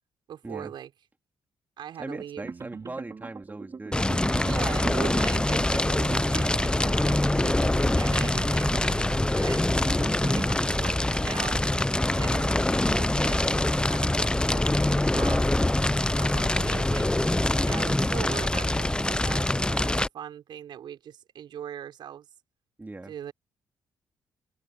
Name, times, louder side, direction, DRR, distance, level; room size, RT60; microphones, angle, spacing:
voice 1, 0.3-0.9 1.8-2.5 4.4-8.9 9.3-11.6 12.0-15.6 16.2-17.1 17.6-22.3 23.1-23.3, right 9 dB, 70° right, 5.5 m, -40 dB
voice 2, 2.0-4.0 22.8-23.1, right 2 dB, 20° right, 2.8 m, -39 dB
sound 1, 2.4-11.0, right 5 dB, 40° right, 4.3 m, -40 dB
Fire, 3.9-20.1, left 1 dB, 10° left, 0.9 m, -24 dB
supercardioid pair, 55°, 8 cm